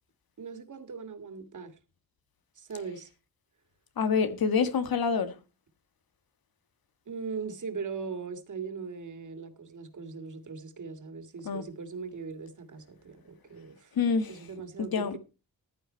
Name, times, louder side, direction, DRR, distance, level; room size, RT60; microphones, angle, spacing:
voice 1, 0.4-1.8 2.6-3.1 7.1-14.0 14.3-15.2, right 5 dB, 50° right, 2.2 m, -40 dB
voice 2, 4.0-5.3 11.4-11.6 13.9-14.4 14.8-15.2, left 5 dB, 65° left, 1.6 m, -27 dB
14.5 x 10.5 x 4.4 m
wide cardioid pair, 160°, 38 cm